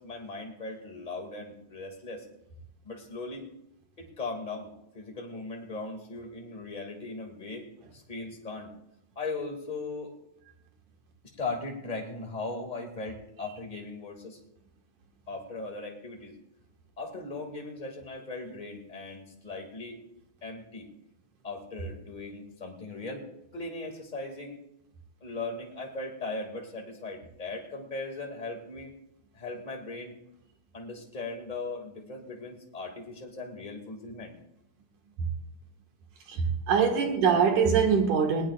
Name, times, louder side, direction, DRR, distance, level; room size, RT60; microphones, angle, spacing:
voice 1, 0.0-2.2 2.8-3.4 4.0-7.6 7.9-8.7 9.2-10.1 11.4-14.4 15.3-16.3 17.0-20.0 20.4-20.9 21.4-23.3 23.5-24.6 25.2-28.9 29.3-30.1 30.7-34.3, left 3 dB, 15° left, 1 dB, 2.1 m, -38 dB
voice 2, 36.3-38.5, right 6 dB, 80° right, 3 dB, 3.3 m, -23 dB
20.0 x 19.0 x 2.5 m, 0.81 s
omnidirectional pair, 3.5 m